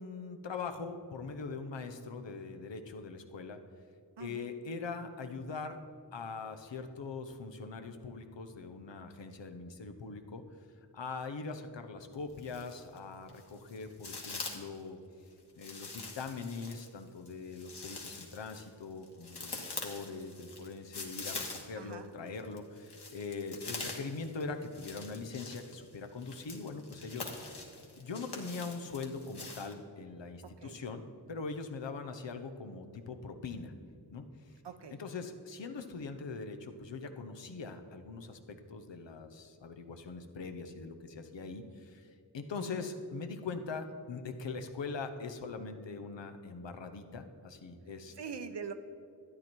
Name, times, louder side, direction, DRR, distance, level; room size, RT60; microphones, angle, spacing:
voice 1, 0.0-3.6 4.2-5.8 6.1-10.4 10.9-15.0 15.6-27.5 28.0-31.0 31.3-33.7 34.1-34.6 35.0-48.1, left 4 dB, 85° left, 6 dB, 0.9 m, -42 dB
voice 2, 4.2-4.5 21.7-22.1 30.4-30.8 34.6-34.9 42.6-42.7 48.1-48.7, right 6 dB, 70° right, 9 dB, 0.9 m, -43 dB
sound 1, 12.1-13.0 13.3-14.8 15.6-21.9 22.3-29.7, left 3 dB, 65° left, 1.7 m, -44 dB
12.5 x 9.5 x 4.5 m, 2.4 s
wide cardioid pair, 55°, 43 cm